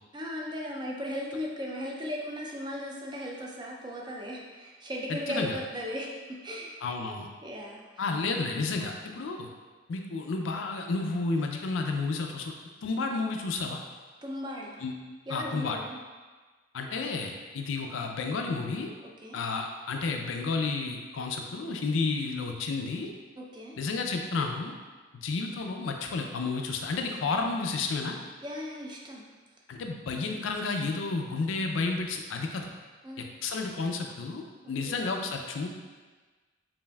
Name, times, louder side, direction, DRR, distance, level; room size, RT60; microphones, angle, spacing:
voice 1, 0.1-6.7 7.4-8.0 14.2-14.8 15.3-16.0 19.0-19.4 23.4-23.8 28.4-29.3 33.0-33.3 34.8-35.1, equal, 25° right, -1 dB, 0.4 m, -37 dB
voice 2, 5.1-5.6 6.8-7.3 8.0-9.5 9.9-12.5 12.8-13.8 14.8-14.9 15.3-15.8 16.7-18.9 19.3-23.1 23.8-24.7 25.2-28.2 29.7-32.7 33.4-35.7, left 3 dB, 80° left, 3 dB, 0.4 m, -31 dB
5.3 x 2.6 x 2.3 m, 1.3 s
head